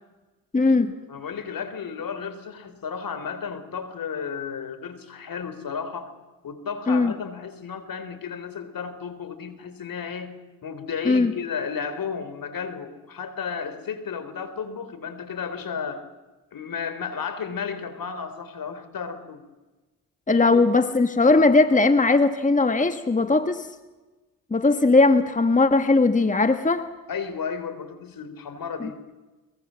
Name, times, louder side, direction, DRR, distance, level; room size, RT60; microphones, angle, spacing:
voice 1, 0.5-0.9 6.9-7.1 11.0-11.3 20.3-23.7 24.5-26.9, left 3 dB, 20° left, 9 dB, 1.5 m, -19 dB
voice 2, 1.1-6.1 6.4-10.3 10.6-16.1 16.5-19.4 20.4-20.6 27.1-29.0, left 6 dB, 60° left, 11 dB, 3.7 m, -33 dB
23.0 x 22.0 x 7.5 m, 1.2 s
supercardioid pair, 60°, 38 cm